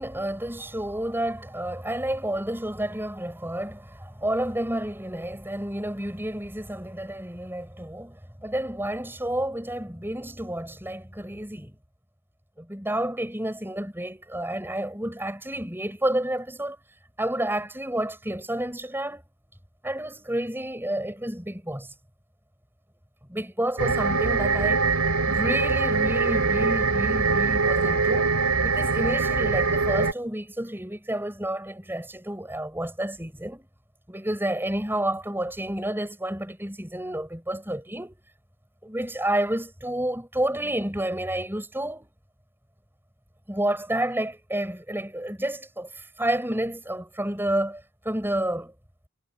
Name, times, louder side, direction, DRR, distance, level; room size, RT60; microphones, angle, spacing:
voice 1, 0.0-11.8 12.6-16.8 17.2-19.2 19.8-21.9 23.3-24.8 25.3-28.3 28.6-33.7 34.1-38.1 38.8-42.1 43.5-48.7, right 1 dB, 10° right, 5.9 m, -30 dB
sound 1, 23.8-30.1, right 4 dB, 85° right, 4.4 m, -23 dB
head